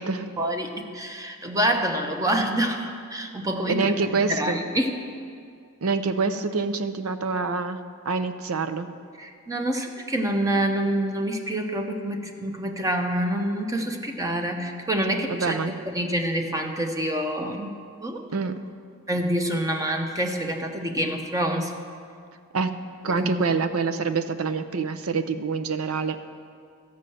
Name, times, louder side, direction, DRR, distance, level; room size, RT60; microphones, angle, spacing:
voice 1, 0.4-4.9 9.2-15.6 15.9-18.2 19.1-21.7 23.2-23.3, right 1 dB, 15° right, 4 dB, 0.8 m, -27 dB
voice 2, 3.7-4.6 5.8-7.8 8.0-8.9 15.3-15.7 18.3-18.6 22.5-22.7 23.0-26.2, right 4 dB, 85° right, 10 dB, 0.6 m, -26 dB
13.5 x 5.5 x 7.7 m, 2.2 s
head